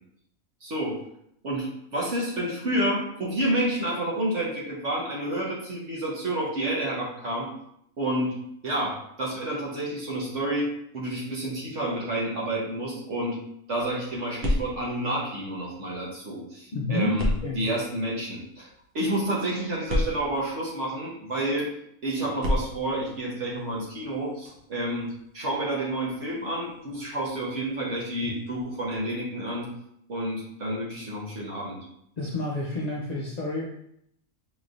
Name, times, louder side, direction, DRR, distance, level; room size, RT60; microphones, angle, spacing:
voice 1, 0.6-1.0 1.4-7.5 8.0-8.3 8.6-10.7 10.9-13.4 13.7-17.3 17.6-18.7 18.9-21.7 22.0-25.1 25.3-29.7 30.1-31.8, right 1 dB, 60° right, -4 dB, 1.4 m, -29 dB
sound 1, 13.7-16.1 17.2-21.1 22.3-29.0, left 1 dB, 90° right, 1.3 m, -35 dB
voice 2, 16.7-17.7 32.2-33.7, left 2 dB, 65° left, -4 dB, 0.4 m, -29 dB
5.1 x 3.1 x 2.6 m, 0.73 s
omnidirectional pair, 1.4 m